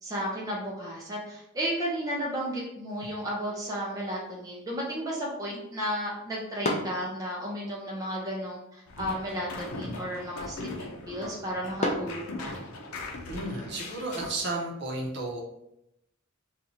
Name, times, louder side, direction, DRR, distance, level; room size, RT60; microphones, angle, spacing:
voice 1, 0.0-12.6, equal, 15° right, -5 dB, 0.5 m, -33 dB
sound 1, 2.9-12.9, left 1 dB, 30° left, 0.5 m, -40 dB
sound 2, 8.9-14.4, left 2 dB, 85° left, 0.6 m, -39 dB
voice 2, 13.3-15.4, right 2 dB, 50° right, -2 dB, 0.8 m, -33 dB
2.7 x 2.4 x 4.2 m, 0.81 s
head